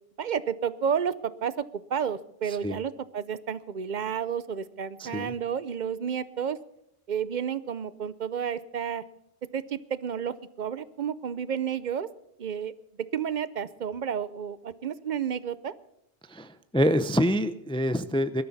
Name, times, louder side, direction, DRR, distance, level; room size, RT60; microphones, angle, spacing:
voice 1, 0.2-6.6 7.1-9.0 9.5-12.1 12.4-12.7 13.1-15.7, right 7 dB, 50° right, 16 dB, 0.7 m, -31 dB
voice 2, 5.0-5.3 16.3-18.4, equal, 5° left, 11 dB, 0.5 m, -26 dB
21.0 x 13.0 x 4.1 m, 0.79 s
omnidirectional pair, 1.0 m